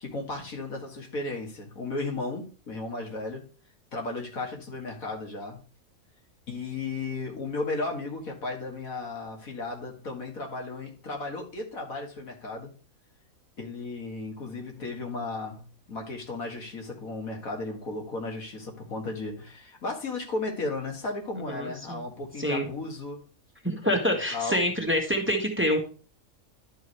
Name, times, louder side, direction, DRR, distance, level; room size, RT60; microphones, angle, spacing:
voice 1, 0.0-3.5 3.9-5.6 6.5-12.7 13.6-23.2 24.3-24.6, left 3 dB, 80° left, 1 dB, 2.3 m, -35 dB
voice 2, 21.5-22.0 22.4-22.7 23.6-25.8, equal, 10° right, 2 dB, 1.4 m, -26 dB
11.5 x 4.7 x 3.2 m, 0.36 s
omnidirectional pair, 1.5 m